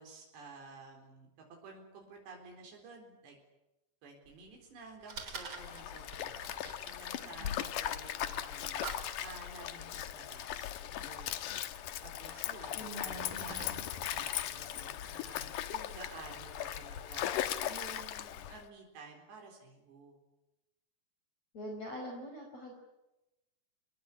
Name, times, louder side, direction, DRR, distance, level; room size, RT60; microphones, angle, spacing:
voice 1, 0.0-3.4 4.0-6.3 6.8-8.9 9.2-11.4 12.0-17.3 17.7-20.2, right 4 dB, 85° right, 2 dB, 6.3 m, -52 dB
Fire, 4.3-17.7, right 3 dB, 30° right, 4.1 m, -52 dB
Stream, 5.6-18.6, left 11 dB, 65° left, 2.3 m, -38 dB
voice 2, 7.2-7.6 12.7-13.8 21.5-22.7, equal, 40° left, 1 dB, 6.2 m, -44 dB
28.0 x 21.5 x 9.9 m, 0.98 s
omnidirectional pair, 4.8 m